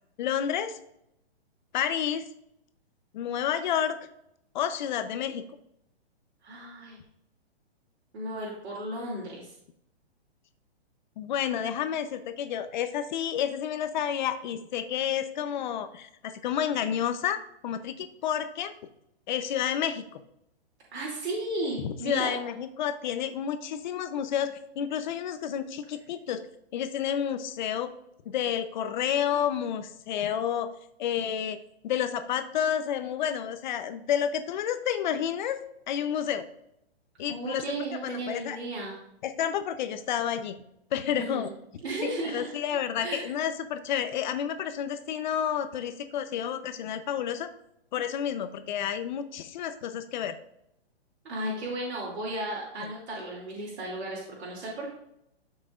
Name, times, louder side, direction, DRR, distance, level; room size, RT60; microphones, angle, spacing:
voice 1, 0.2-0.7 1.7-2.2 3.1-4.0 4.5-5.4 11.2-18.7 19.3-20.2 21.8-26.4 26.7-27.9 28.3-30.7 31.0-31.6 31.8-35.6 35.9-36.4 37.2-38.6 39.2-40.6 40.9-41.5 42.0-47.5 47.9-50.4, left 9 dB, 45° left, 9 dB, 0.8 m, -30 dB
voice 2, 6.4-7.0 8.1-9.5 20.9-22.3 37.3-38.9 41.2-41.5 41.8-42.5 43.0-43.3 51.2-54.9, right 1 dB, 85° right, -4 dB, 2.8 m, -34 dB
13.0 x 6.0 x 2.5 m, 0.79 s
hypercardioid pair, 155°, 32 cm